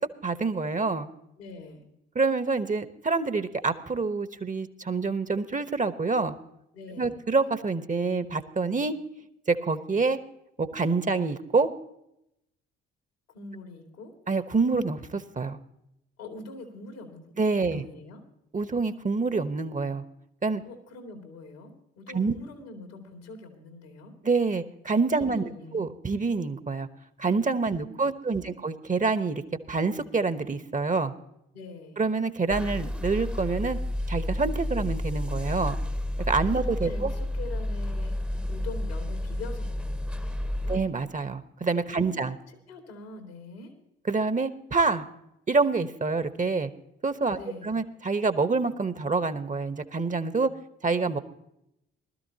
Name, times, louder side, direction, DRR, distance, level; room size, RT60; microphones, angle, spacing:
voice 1, 0.2-1.1 2.1-6.3 7.0-8.9 9.5-10.2 10.6-11.7 14.3-15.6 17.4-17.9 18.5-20.0 20.4-20.6 22.1-22.3 24.2-26.9 27.2-29.4 29.7-31.1 32.0-33.8 34.1-35.8 36.3-37.1 40.7-42.4 44.1-45.0 45.5-46.7 47.0-47.4 47.6-50.5 50.8-51.2, right 4 dB, 25° right, 12 dB, 1.0 m, -27 dB
voice 2, 1.4-1.8 6.7-7.2 13.3-14.1 16.2-17.2 17.6-18.2 20.6-24.1 25.2-25.8 27.7-28.7 31.5-32.0 36.6-38.1 38.5-40.8 41.9-43.7 47.3-47.8, left 2 dB, 80° left, 4 dB, 2.4 m, -44 dB
sound 1, 32.5-40.8, left 1 dB, 5° right, 0.9 m, -31 dB
20.0 x 13.0 x 2.8 m, 0.81 s
hypercardioid pair, 45°, 30 cm